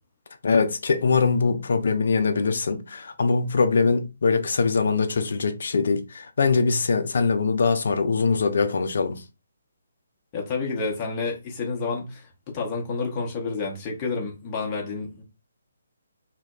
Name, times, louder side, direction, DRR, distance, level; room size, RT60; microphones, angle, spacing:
voice 1, 0.4-9.2, left 4 dB, 60° left, 0.4 m, -22 dB
voice 2, 10.3-15.2, left 4 dB, 25° left, 0.7 m, -29 dB
2.7 x 2.1 x 2.2 m
figure-of-eight pair, 140°, 0 cm